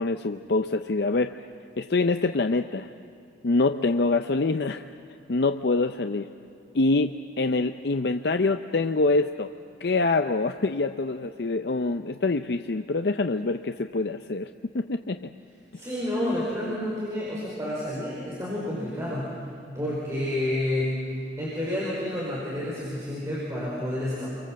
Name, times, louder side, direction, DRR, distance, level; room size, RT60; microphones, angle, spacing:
voice 1, 0.0-1.4 1.8-2.9 3.4-4.9 5.3-6.3 6.7-9.5 9.8-15.3, left 3 dB, 65° left, 7 dB, 0.6 m, -25 dB
voice 2, 15.8-19.3 19.8-20.9 21.4-24.3, left 1 dB, 15° right, -6 dB, 5.2 m, -29 dB
29.0 x 24.0 x 7.6 m, 2.5 s
head